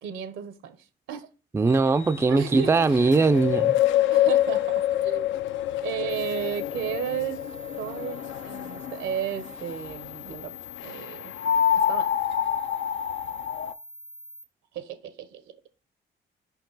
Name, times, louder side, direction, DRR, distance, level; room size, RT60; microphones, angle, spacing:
voice 1, 0.0-1.3 2.3-3.1 4.1-5.3 5.5-7.4 7.8-11.3 11.7-12.1 14.7-15.6, right 9 dB, 85° right, 0.9 m, -34 dB
voice 2, 1.5-3.8, right 3 dB, 15° right, 0.3 m, -21 dB
sound 1, 1.7-10.1 10.8-13.7, left 11 dB, 75° left, 0.4 m, -26 dB
sound 2, 6.1-14.4, left 4 dB, 45° left, 0.9 m, -44 dB
5.4 x 4.6 x 3.9 m
cardioid pair, 90°, 20 cm